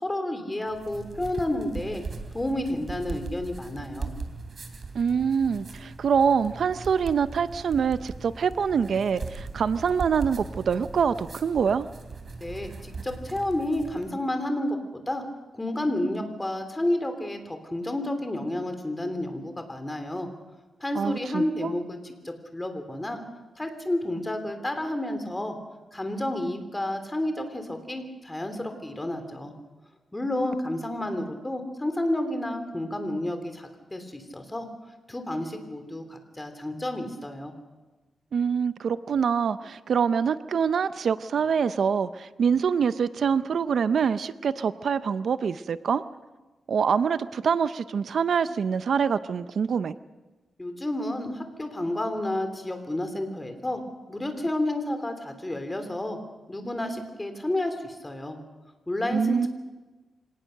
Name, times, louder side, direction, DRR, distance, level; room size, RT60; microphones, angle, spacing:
voice 1, 0.0-2.0 2.3-4.1 12.4-14.8 15.1-15.2 15.5-20.3 20.8-23.2 23.6-25.6 25.9-29.5 30.1-34.7 35.1-37.5 50.6-53.8 54.1-56.2 56.5-58.4 58.9-59.5, left 1 dB, 15° left, 7 dB, 3.3 m, -30 dB
sound 1, 0.7-14.1, right 4 dB, 50° right, 3.0 m, -39 dB
voice 2, 4.9-11.9 21.0-21.7 38.3-46.0 46.7-49.9 59.1-59.5, right 6 dB, 70° right, 13 dB, 0.6 m, -25 dB
25.5 x 18.5 x 6.6 m, 1.2 s
cardioid pair, 100°, 0 cm